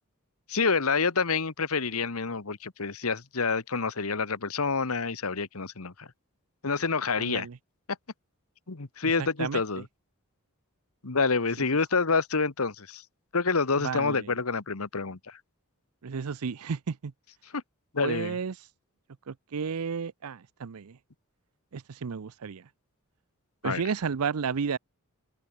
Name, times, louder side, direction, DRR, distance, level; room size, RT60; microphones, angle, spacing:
voice 1, 0.5-6.1 6.6-7.5 8.7-9.8 11.0-13.0 13.3-15.4 17.5-17.6 17.9-18.3 23.6-23.8, left 4 dB, 70° left, 1.4 m, -28 dB
voice 2, 7.2-7.6 9.0-9.6 13.8-14.3 16.0-17.1 18.0-18.7 19.3-21.0 21.7-22.7 23.6-24.8, right 6 dB, 80° right, 0.6 m, -32 dB
open air
head